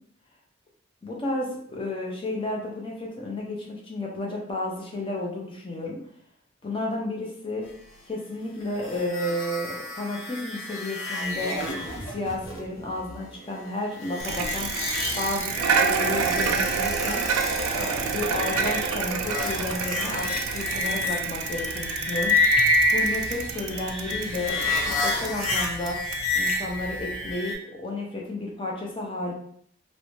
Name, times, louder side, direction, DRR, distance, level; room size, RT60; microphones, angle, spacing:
voice 1, 1.0-6.0 6.6-7.6 8.1-11.6 12.1-14.7 15.2-17.2 17.7-20.3 20.5-22.3 22.9-24.6 24.8-26.0 26.4-29.3, left 1 dB, 25° left, -2 dB, 0.4 m, -32 dB
sound 1, 8.8-27.5, left 2 dB, 80° left, 0.7 m, -29 dB
Bicycle, 14.2-27.3, right 6 dB, 90° right, 0.3 m, -29 dB
2.5 x 2.1 x 3.0 m, 0.63 s
head